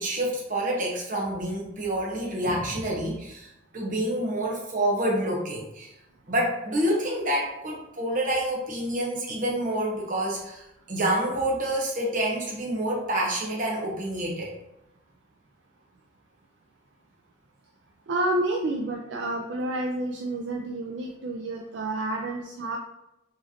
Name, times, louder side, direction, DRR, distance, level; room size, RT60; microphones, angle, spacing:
voice 1, 0.0-5.9 6.3-14.5, right 1 dB, 40° right, -2 dB, 1.0 m, -28 dB
voice 2, 18.1-22.8, right 1 dB, 60° right, 1 dB, 0.4 m, -29 dB
4.8 x 3.1 x 2.8 m, 0.88 s
head